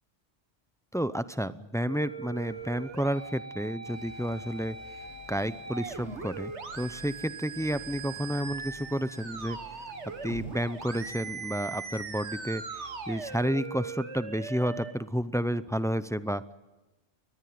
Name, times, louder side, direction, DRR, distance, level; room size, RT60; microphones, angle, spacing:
voice 1, 0.9-9.6 10.2-16.5, equal, 5° left, 13 dB, 0.5 m, -31 dB
sound 1, 1.9-14.9, right 5 dB, 85° right, 1.9 m, -40 dB
Alarm, 2.4-8.6, equal, 65° right, 8.3 m, -59 dB
sound 2, 3.9-13.5, left 2 dB, 50° left, 1.9 m, -54 dB
23.5 x 19.5 x 9.4 m, 1.1 s
omnidirectional pair, 1.1 m